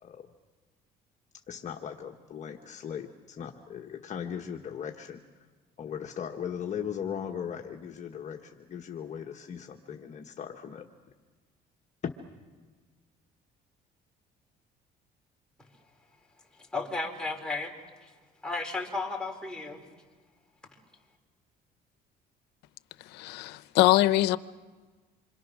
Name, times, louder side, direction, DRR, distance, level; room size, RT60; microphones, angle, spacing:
voice 1, 1.5-5.2 5.8-10.9, left 8 dB, 45° left, 1.3 m, -38 dB
voice 2, 16.7-17.7 18.0-18.1 18.4-19.9, left 3 dB, 5° left, 4.0 m, -33 dB
voice 3, 23.1-24.4, left 16 dB, 85° left, 0.7 m, -23 dB
27.0 x 25.0 x 6.2 m
cardioid pair, 110°, 17 cm